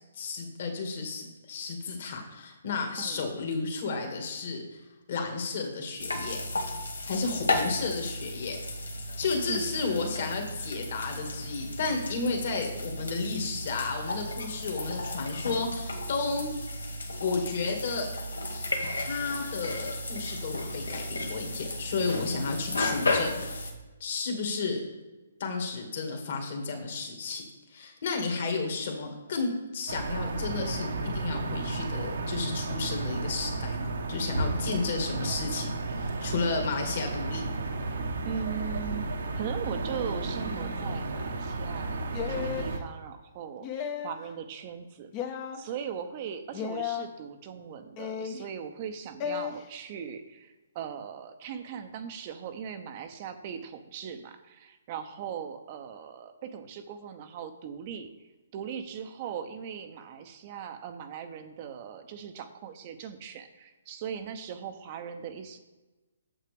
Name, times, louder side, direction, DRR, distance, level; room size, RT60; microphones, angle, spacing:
voice 1, 0.1-6.4 7.1-8.6 9.2-16.5 17.2-18.1 18.5-18.6 19.0-23.6 24.0-24.8 25.4-27.4 27.7-37.5, left 4 dB, 50° left, 3 dB, 1.9 m, -32 dB
voice 2, 3.0-3.3 9.5-9.9 38.2-39.0 39.3-58.1 58.5-65.6, right 8 dB, 35° right, 8 dB, 0.7 m, -39 dB
sound 1, 6.0-23.7, left 2 dB, 75° left, 1.3 m, -34 dB
sound 2, 29.9-42.8, right 3 dB, 65° right, 1.0 m, -33 dB
sound 3, 42.1-42.7 43.6-44.2 45.1-45.6 46.5-47.1 48.0-48.4 49.2-49.5, left 9 dB, 30° left, 0.7 m, -34 dB
8.6 x 7.5 x 3.4 m, 1.2 s
figure-of-eight pair, 135°, 0 cm